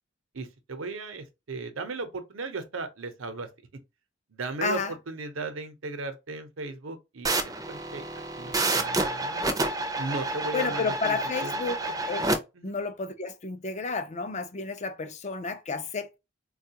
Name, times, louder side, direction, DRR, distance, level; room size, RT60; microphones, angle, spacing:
voice 1, 0.3-3.5 4.3-7.3 7.7-9.4 10.0-12.0 12.5-12.8, right 3 dB, 85° right, 0.8 m, -36 dB
voice 2, 4.6-4.9 10.5-11.8 12.1-12.2 12.6-16.2, left 4 dB, 35° left, 0.4 m, -31 dB
sound 1, 7.2-12.4, right 2 dB, 20° right, 0.5 m, -29 dB
4.3 x 2.3 x 2.8 m
head